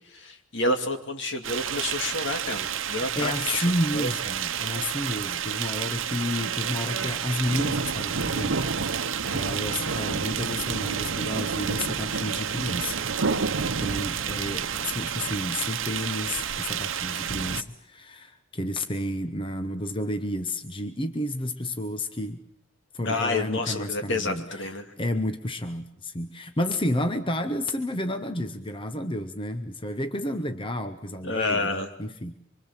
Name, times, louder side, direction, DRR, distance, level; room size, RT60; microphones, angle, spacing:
voice 1, 0.1-3.6 3.9-4.1 23.0-24.9 31.2-31.9, left 2 dB, 65° left, 5 dB, 2.7 m, -29 dB
sound 1, 1.4-17.6, right 6 dB, 75° right, 0.9 m, -29 dB
voice 2, 3.1-13.0 13.6-22.4 22.9-32.3, left 1 dB, 25° left, 8 dB, 1.0 m, -31 dB
25.5 x 24.5 x 7.5 m, 0.72 s
head